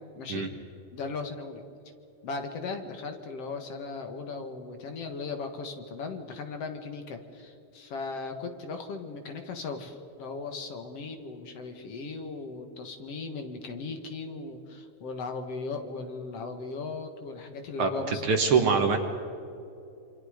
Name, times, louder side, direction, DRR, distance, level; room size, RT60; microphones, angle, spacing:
voice 1, 0.1-0.5 0.9-1.6 2.2-18.3 18.6-18.9, left 4 dB, 55° left, 6 dB, 2.5 m, -37 dB
voice 2, 17.8-19.0, right 5 dB, 50° right, 5 dB, 2.1 m, -24 dB
28.0 x 25.5 x 5.1 m, 2.8 s
omnidirectional pair, 3.4 m